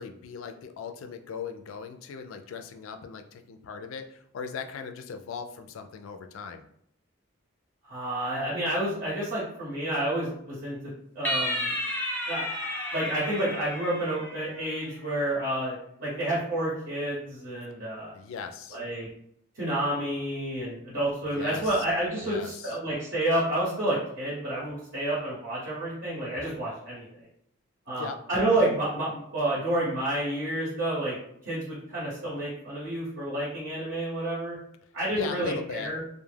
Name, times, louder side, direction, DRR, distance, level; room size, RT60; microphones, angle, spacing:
voice 1, 0.0-6.6 18.1-18.8 21.3-21.8 22.2-22.8 27.9-28.2 35.1-35.9, left 6 dB, 70° left, 7 dB, 0.3 m, -39 dB
voice 2, 7.8-10.8 11.1-11.7 12.3-12.5 12.9-18.1 18.7-19.1 19.5-27.0 27.9-31.2 31.4-34.6 34.9-36.0, right 1 dB, 55° right, -8 dB, 1.0 m, -29 dB
sound 1, 11.2-14.8, left 1 dB, 10° left, 0.4 m, -32 dB
2.3 x 2.1 x 3.2 m, 0.70 s
head